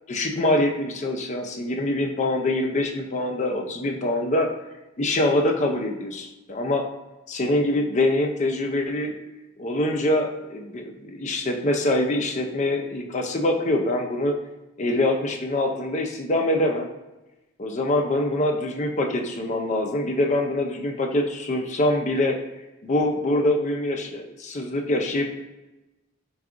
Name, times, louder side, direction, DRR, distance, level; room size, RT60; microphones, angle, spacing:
voice 1, 0.1-4.5 5.0-6.8 7.3-9.2 9.6-14.4 14.8-16.9 17.6-22.4 22.8-25.3, left 1 dB, 35° left, 3 dB, 0.5 m, -24 dB
4.7 x 2.3 x 3.7 m, 1.0 s
head